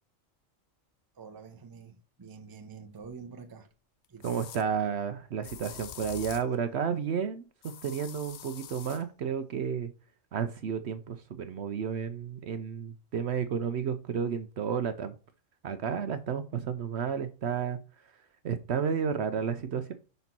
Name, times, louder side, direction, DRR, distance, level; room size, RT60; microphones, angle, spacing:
voice 1, 1.1-3.7 4.1-4.5, right 5 dB, 20° right, 0.6 m, -46 dB
sound 1, 3.0-3.1 4.2-4.6 5.4-6.5 7.6-9.0, left 10 dB, 60° left, 0.6 m, -45 dB
voice 2, 4.2-7.5 7.8-9.9 10.3-15.1 15.6-17.8 18.4-19.9, right 7 dB, 60° right, 0.8 m, -32 dB
5.4 x 4.1 x 5.9 m
omnidirectional pair, 1.4 m